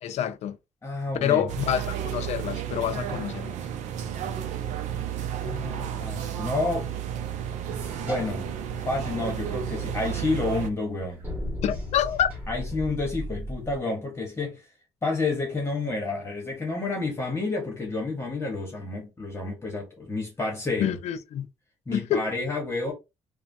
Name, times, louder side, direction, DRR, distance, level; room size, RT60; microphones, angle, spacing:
voice 1, 0.0-0.6 1.2-3.6 11.6-12.3 20.8-21.5 21.9-22.3, left 10 dB, 65° left, 0.4 m, -27 dB
voice 2, 0.8-1.5 5.4-6.9 8.0-8.5 8.8-11.2 12.5-14.7 15.0-21.0 21.9-22.9, left 3 dB, 20° left, 1.0 m, -30 dB
sound 1, 1.5-10.7, right 9 dB, 85° right, 0.5 m, -32 dB
sound 2, 7.6-13.8, left 1 dB, 15° right, 1.5 m, -38 dB
3.1 x 2.1 x 2.6 m
cardioid pair, 110°, 12 cm